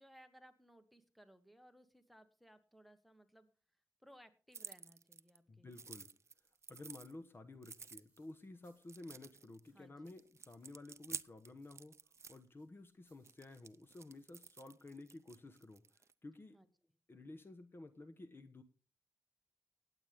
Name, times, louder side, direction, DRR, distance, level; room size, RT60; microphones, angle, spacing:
voice 1, 0.0-3.5 4.0-5.7 9.7-10.1 16.5-16.7, equal, ahead, 10 dB, 1.3 m, -63 dB
sound 1, 4.5-5.4 5.7-7.1 7.6-8.3 8.8-9.7 10.1-12.4 13.2-16.1, right 5 dB, 45° right, 0.5 m, -51 dB
voice 2, 5.5-6.1 6.7-11.9 12.3-15.8 16.2-16.6 17.1-18.6, left 2 dB, 35° left, 10 dB, 1.1 m, -53 dB
sound 2, 6.3-9.2 9.6-11.3 11.6-14.6, right 2 dB, 20° right, 4.8 m, -79 dB
18.0 x 8.2 x 3.5 m, 0.35 s
wide cardioid pair, 90°, 7 cm